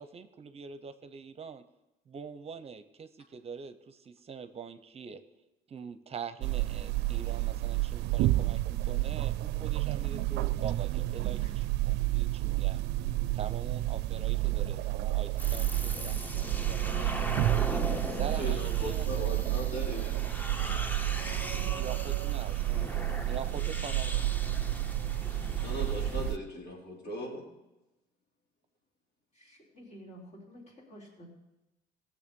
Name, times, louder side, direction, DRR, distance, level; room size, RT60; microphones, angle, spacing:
voice 1, 0.0-1.6 2.1-5.2 5.7-12.8 13.3-17.1 18.1-19.4 21.7-22.9 23.3-24.5, right 6 dB, 35° right, 11 dB, 0.7 m, -44 dB
sound 1, 6.4-26.4, right 17 dB, 90° right, 0.4 m, -30 dB
sound 2, 15.4-26.3, equal, 10° left, 0.8 m, -39 dB
voice 2, 18.3-20.2 25.3-27.5, equal, 75° left, -2 dB, 3.7 m, -39 dB
voice 3, 29.4-31.3, equal, 45° left, -1 dB, 3.9 m, -51 dB
16.5 x 7.0 x 5.3 m, 1.0 s
cardioid pair, 110°, 17 cm